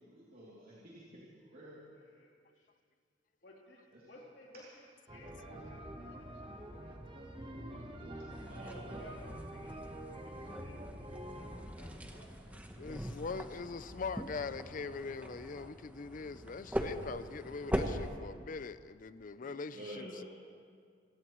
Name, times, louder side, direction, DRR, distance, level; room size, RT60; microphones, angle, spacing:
voice 1, 0.0-1.8 3.9-4.1 4.5-4.6 8.4-9.0 19.4-20.2, right 1 dB, 55° right, -8 dB, 3.0 m, -50 dB
voice 2, 2.0-2.7 3.4-7.0 8.6-8.7 9.0-11.1 11.4-13.1, left 1 dB, 70° left, -3 dB, 3.6 m, -58 dB
sound 1, 5.1-11.6, right 1 dB, 30° right, 1.2 m, -46 dB
sound 2, 8.3-18.1, equal, 10° right, 1.0 m, -42 dB
voice 3, 12.8-20.2, left 4 dB, 50° left, 13 dB, 0.5 m, -42 dB
27.0 x 16.5 x 3.1 m, 2.1 s
head